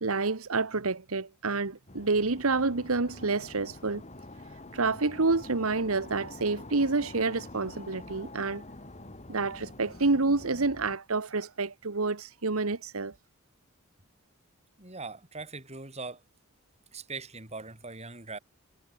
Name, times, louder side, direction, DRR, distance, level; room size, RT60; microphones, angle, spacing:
voice 1, 0.0-4.0 4.7-8.6 9.3-13.1, right 3 dB, 75° right, 1.3 m, -28 dB
sound 1, 1.9-11.0, left 2 dB, 30° left, 3.2 m, -46 dB
voice 2, 14.8-16.2 16.9-18.4, right 3 dB, 30° right, 5.9 m, -41 dB
head